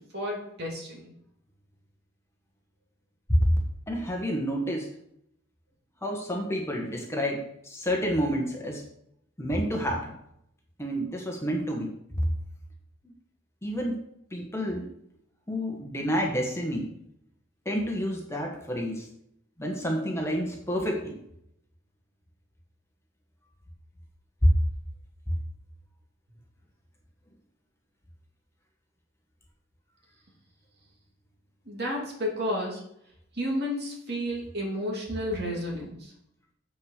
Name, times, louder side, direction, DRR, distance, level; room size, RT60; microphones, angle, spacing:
voice 1, 0.1-1.1 31.7-32.8 33.4-36.1, equal, 55° right, -2 dB, 2.9 m, -31 dB
voice 2, 3.9-4.9 6.0-8.8 9.4-10.1 10.8-12.3 13.6-14.0 14.3-14.9 15.5-16.9 17.6-19.1 19.6-21.2 24.4-24.5, equal, 15° left, 0 dB, 1.4 m, -28 dB
7.2 x 6.5 x 6.7 m, 0.75 s
head